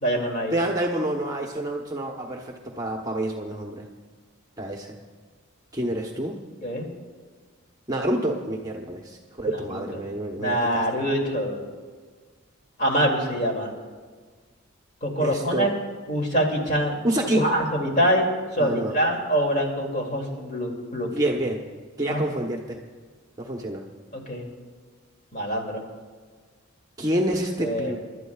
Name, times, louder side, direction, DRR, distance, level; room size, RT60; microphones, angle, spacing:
voice 1, 0.0-0.6 6.6-6.9 9.7-9.8 10.4-11.7 12.8-13.7 15.0-15.7 16.1-17.0 17.3-21.1 22.1-22.2 24.1-24.5 25.3-25.8 27.6-27.9, equal, 35° left, 0 dB, 2.5 m, -25 dB
voice 2, 0.5-3.9 4.6-4.9 5.7-6.4 7.9-10.9 15.2-15.8 17.0-17.5 18.6-18.9 21.0-21.6 22.0-22.8 23.4-23.8 27.0-28.0, right 1 dB, 15° right, 0 dB, 1.0 m, -28 dB
29.5 x 12.0 x 2.4 m, 1.5 s
head